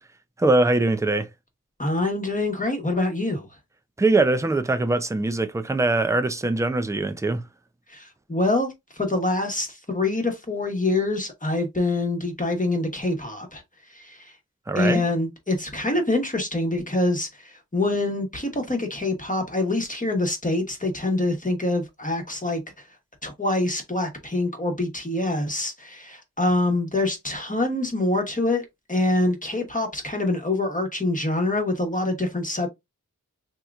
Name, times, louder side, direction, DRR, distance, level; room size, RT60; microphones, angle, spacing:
voice 1, 0.4-1.3 4.0-7.4 14.7-15.0, right 2 dB, 10° right, 0.4 m, -22 dB
voice 2, 1.8-3.5 7.9-13.6 13.9-14.3 14.7-22.6 23.2-32.7, left 2 dB, 25° left, 1.1 m, -25 dB
3.5 x 2.9 x 2.3 m
wide cardioid pair, 70°, 33 cm